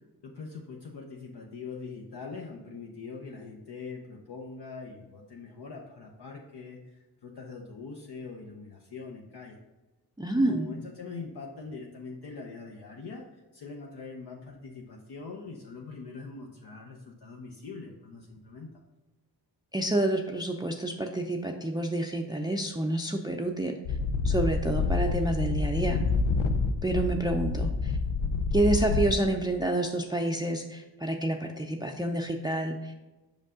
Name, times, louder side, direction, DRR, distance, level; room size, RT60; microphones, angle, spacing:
voice 1, 0.2-9.6 10.4-13.2 13.5-18.7, left 4 dB, 60° left, -1 dB, 0.8 m, -43 dB
voice 2, 10.2-10.7 19.7-23.8 24.2-26.0 26.8-27.9 28.5-33.1, right 1 dB, 10° right, 3 dB, 0.5 m, -28 dB
sound 1, 23.9-29.1, left 4 dB, 85° left, 0.6 m, -28 dB
5.2 x 5.2 x 3.7 m, 1.1 s
supercardioid pair, 45°, 45 cm